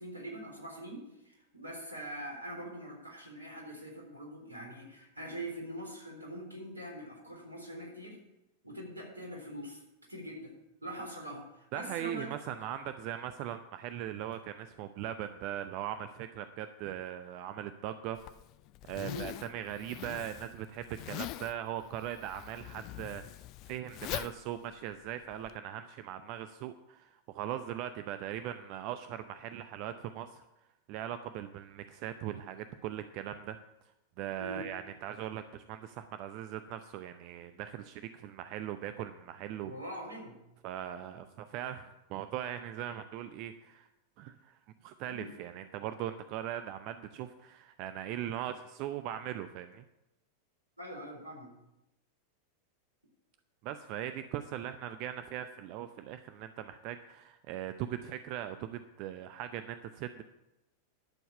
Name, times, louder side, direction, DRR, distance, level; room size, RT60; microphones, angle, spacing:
voice 1, 0.0-8.2 8.6-9.8 10.1-12.3 12.6-12.7 19.0-19.3 34.4-34.6 39.6-40.4 45.1-45.3 50.8-51.5, right 1 dB, 80° right, -1 dB, 3.7 m, -43 dB
voice 2, 11.7-18.2 18.9-23.2 23.6-30.4 30.9-33.6 34.2-39.7 40.6-43.9 44.2-49.8 53.6-60.2, right 11 dB, 45° right, 10 dB, 0.6 m, -40 dB
Zipper (clothing), 18.1-25.6, left 16 dB, 40° left, 0.3 m, -43 dB
11.5 x 7.1 x 7.1 m, 0.92 s
figure-of-eight pair, 90°, 0 cm